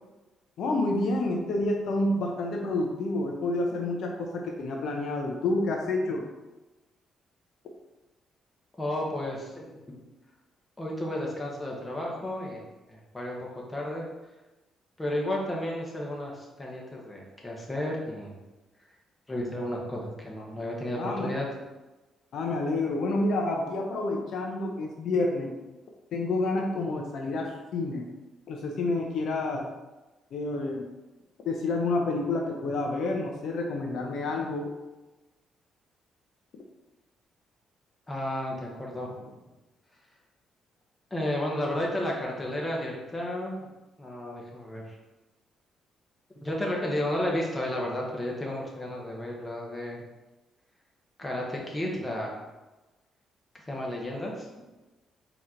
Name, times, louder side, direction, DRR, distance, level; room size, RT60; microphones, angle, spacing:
voice 1, 0.6-6.2 21.0-21.3 22.3-25.5 26.1-28.0 28.5-29.6 30.3-30.8 31.5-34.7, left 2 dB, 70° left, 1 dB, 0.6 m, -29 dB
voice 2, 8.8-10.0 10.8-12.6 12.9-13.4 13.7-14.0 15.0-18.3 19.3-21.5 38.1-39.2 41.1-43.5 44.0-44.9 46.4-50.0 51.2-52.4 53.7-54.6, left 1 dB, 15° left, -2 dB, 1.2 m, -32 dB
4.3 x 3.0 x 3.8 m, 1.1 s
cardioid pair, 90°, 0 cm